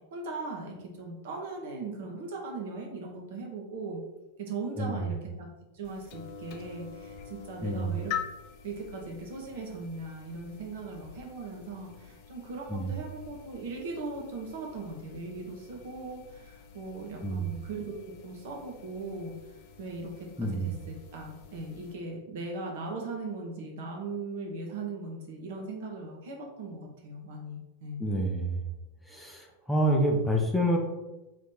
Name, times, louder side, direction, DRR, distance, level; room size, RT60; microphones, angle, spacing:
voice 1, 0.1-4.0 4.4-5.5 5.7-8.1 8.6-19.3 19.8-20.3 20.6-28.0, right 3 dB, 55° right, 0 dB, 1.0 m, -39 dB
voice 2, 4.8-5.1 7.6-7.9 12.7-12.9 17.2-17.5 20.4-20.7 28.0-28.6 29.1-30.8, right 1 dB, ahead, -1 dB, 0.6 m, -28 dB
sound 1, 5.8-21.9, left 8 dB, 45° left, 0.6 m, -46 dB
3.4 x 3.1 x 4.3 m, 1.0 s
figure-of-eight pair, 90°, 0 cm